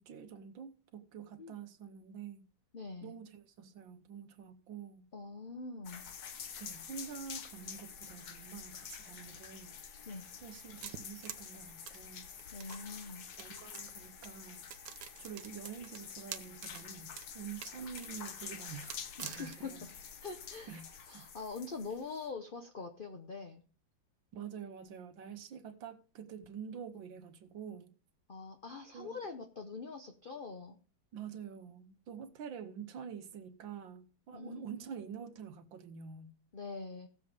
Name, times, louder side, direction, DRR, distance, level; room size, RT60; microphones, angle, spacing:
voice 1, 0.0-2.5 3.0-5.1 6.6-9.8 10.4-12.3 13.4-14.6 15.2-19.8 20.7-20.9 21.1-21.3 24.3-27.9 28.9-29.2 31.1-36.3, right 7 dB, 85° right, 1.7 m, -47 dB
voice 2, 2.7-3.1 5.1-6.0 10.1-10.3 12.5-13.3 19.2-19.9 20.2-23.6 28.3-30.8 34.3-34.6 36.5-37.1, left 4 dB, 40° left, 0.8 m, -44 dB
sound 1, 5.8-22.3, left 7 dB, 60° left, 1.4 m, -48 dB
sound 2, 10.8-12.8 13.3-13.9 14.2-14.3 14.7-16.8 17.1-17.3 17.6-19.7, right 10 dB, 70° right, 1.3 m, -47 dB
17.0 x 7.4 x 3.4 m
omnidirectional pair, 2.1 m